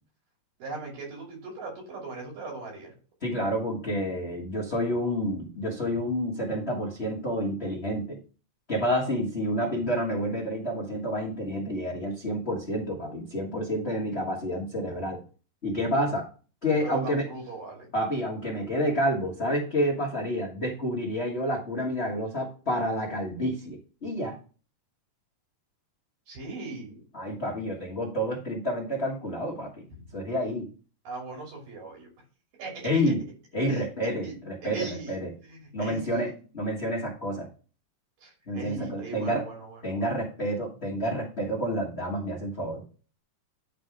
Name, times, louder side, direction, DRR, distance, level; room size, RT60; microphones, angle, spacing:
voice 1, 0.6-2.9 16.8-17.9 26.3-27.0 30.0-30.1 31.0-32.1 32.6-33.1 33.7-34.4 34.6-35.2 35.4-36.3 38.2-40.1, right 3 dB, 85° right, -1 dB, 4.5 m, -39 dB
voice 2, 3.2-8.2 8.7-15.2 15.6-16.3 16.6-17.3 17.9-24.3 27.1-29.8 30.1-30.7 32.8-33.2 33.5-35.3 35.7-37.5 38.5-39.5 39.8-42.8, equal, 70° left, -3 dB, 0.6 m, -29 dB
9.9 x 3.4 x 4.8 m, 0.38 s
omnidirectional pair, 3.7 m